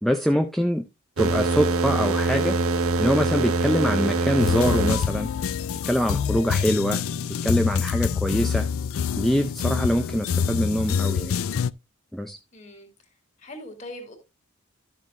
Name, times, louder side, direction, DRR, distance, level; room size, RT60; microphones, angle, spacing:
voice 1, 0.0-0.8 1.2-2.6 3.0-5.3 5.8-7.0 7.4-8.7 9.2-11.4 12.1-12.4, equal, ahead, 0.4 m, -24 dB
sound 1, 1.2-5.0, right 3 dB, 80° right, 1.1 m, -24 dB
sound 2, 4.4-11.7, left 7 dB, 70° left, 0.4 m, -26 dB
voice 2, 12.5-12.9 13.4-14.1, left 1 dB, 30° left, 2.8 m, -40 dB
12.0 x 7.4 x 2.6 m
head